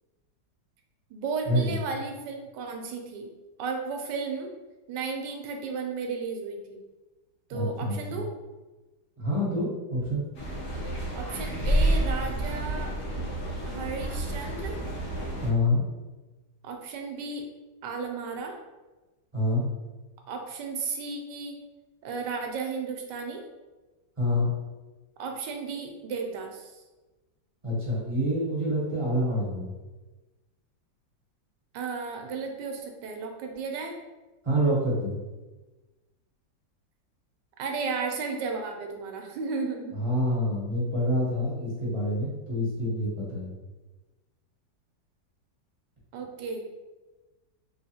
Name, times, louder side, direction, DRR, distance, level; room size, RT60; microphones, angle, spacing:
voice 1, 1.1-3.3 3.6-4.5 4.9-6.8 7.5-8.3 11.1-12.9 13.7-14.8 16.6-17.4 17.8-18.5 20.3-21.6 22.0-23.4 25.2-26.7 31.7-33.9 37.6-40.0 46.1-46.6, right 4 dB, 75° right, 3 dB, 1.2 m, -34 dB
voice 2, 7.5-8.2 9.2-10.2 15.4-15.8 19.3-19.6 24.2-24.5 27.6-29.7 34.4-35.2 39.9-43.5, equal, 25° right, -7 dB, 0.7 m, -27 dB
sound 1, 10.3-15.5, right 1 dB, 50° left, 1.2 m, -29 dB
3.7 x 3.1 x 2.7 m, 1.1 s
omnidirectional pair, 2.1 m